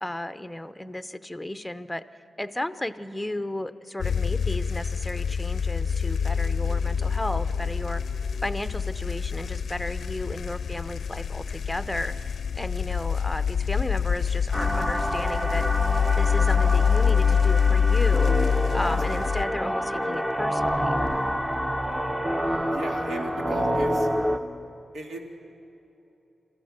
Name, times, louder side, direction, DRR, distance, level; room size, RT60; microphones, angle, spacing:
voice 1, 0.0-2.0 2.4-8.0 8.4-12.1 12.6-15.6 16.2-18.4 18.7-21.0, left 1 dB, 10° left, 12 dB, 0.7 m, -34 dB
sound 1, 4.0-19.5, left 6 dB, 70° left, 0.5 m, -25 dB
sound 2, 14.5-24.4, equal, 15° right, 1.0 m, -27 dB
voice 2, 18.9-19.3 22.7-24.1 24.9-25.2, right 2 dB, 80° right, 1 dB, 2.5 m, -37 dB
27.0 x 14.5 x 6.7 m, 2.8 s
wide cardioid pair, 100°, 0 cm